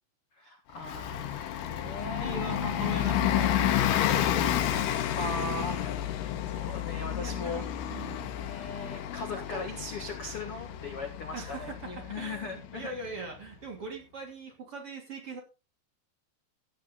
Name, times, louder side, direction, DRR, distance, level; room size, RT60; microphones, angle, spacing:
voice 1, 0.3-3.0 5.1-7.6 8.3-12.9, left 2 dB, 55° left, 4 dB, 1.6 m, -39 dB
Bus, 0.8-13.1, left 10 dB, 90° left, 3.9 m, -31 dB
voice 2, 1.8-4.9 7.2-8.3 9.3-9.8 11.3-15.4, right 3 dB, 35° right, 1 dB, 3.0 m, -42 dB
17.0 x 9.0 x 4.0 m, 0.30 s
omnidirectional pair, 5.4 m